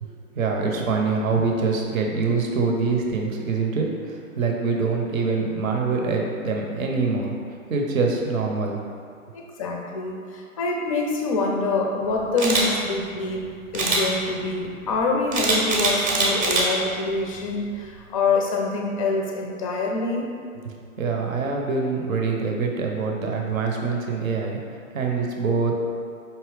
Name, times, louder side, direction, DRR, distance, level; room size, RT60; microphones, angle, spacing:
voice 1, 0.0-7.4 7.7-8.8 21.0-24.6 24.9-25.7, right 4 dB, 70° right, 0 dB, 0.8 m, -24 dB
voice 2, 9.3-20.3, left 3 dB, 25° left, 0 dB, 0.4 m, -25 dB
Camera, 12.4-12.6 13.7-14.0 15.3-16.6 17.1-17.4, right 3 dB, 25° right, 0.7 m, -22 dB
4.7 x 2.8 x 3.1 m, 2.3 s
figure-of-eight pair, 115°, 42 cm